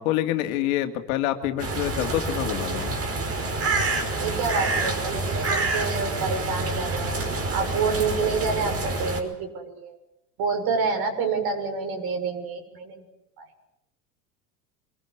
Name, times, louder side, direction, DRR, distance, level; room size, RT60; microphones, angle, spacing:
voice 1, 0.0-2.9, left 13 dB, 60° left, 6 dB, 2.7 m, -26 dB
sound 1, 1.6-9.2, right 2 dB, 30° right, 5.4 m, -27 dB
voice 2, 4.2-7.1 7.5-9.9 10.4-13.0 13.4-13.5, right 5 dB, 50° right, 6 dB, 6.9 m, -28 dB
25.5 x 22.0 x 8.2 m, 0.86 s
hypercardioid pair, 80°, 46 cm